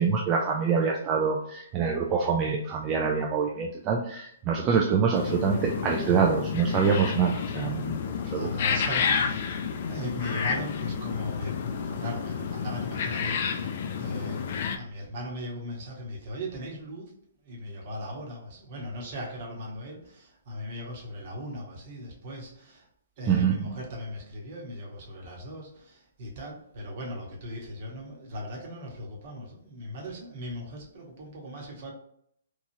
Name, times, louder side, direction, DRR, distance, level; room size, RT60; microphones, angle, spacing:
voice 1, 0.0-8.0 8.3-8.5 23.3-23.8, right 6 dB, 25° right, 0 dB, 0.4 m, -25 dB
sound 1, 5.1-14.8, left 6 dB, 50° left, 0.4 m, -30 dB
voice 2, 8.3-9.5 9.8-11.6 11.8-17.1 17.4-22.8 23.2-31.9, equal, 50° right, -1 dB, 1.1 m, -38 dB
3.0 x 2.3 x 2.7 m, 0.68 s
hypercardioid pair, 135°, 0 cm